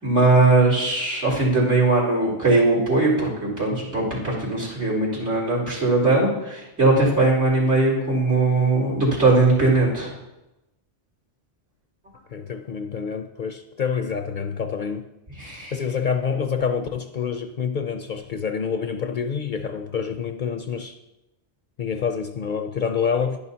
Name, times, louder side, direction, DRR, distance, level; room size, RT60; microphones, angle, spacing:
voice 1, 0.0-10.1 15.4-15.7, right 2 dB, 80° right, -4 dB, 3.8 m, -20 dB
voice 2, 12.3-15.1 15.7-21.0 21.8-23.4, left 6 dB, 55° left, 7 dB, 0.6 m, -27 dB
11.0 x 10.5 x 2.8 m, 0.95 s
omnidirectional pair, 1.2 m